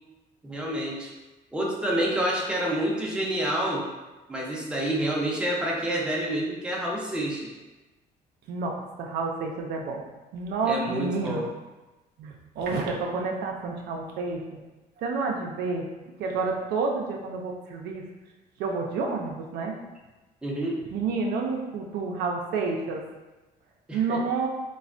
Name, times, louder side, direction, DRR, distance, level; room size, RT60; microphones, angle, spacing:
voice 1, 0.4-1.1 1.5-3.9 4.3-7.6 10.7-11.5 20.4-20.8 23.9-24.2, right 1 dB, 5° right, -4 dB, 0.6 m, -28 dB
voice 2, 8.5-10.0 10.3-11.4 12.2-14.4 15.0-15.8 16.2-18.0 18.6-19.7 20.9-23.0 23.9-24.5, right 4 dB, 75° right, 1 dB, 0.5 m, -29 dB
3.2 x 2.2 x 2.4 m, 1.1 s
cardioid pair, 110°, 17 cm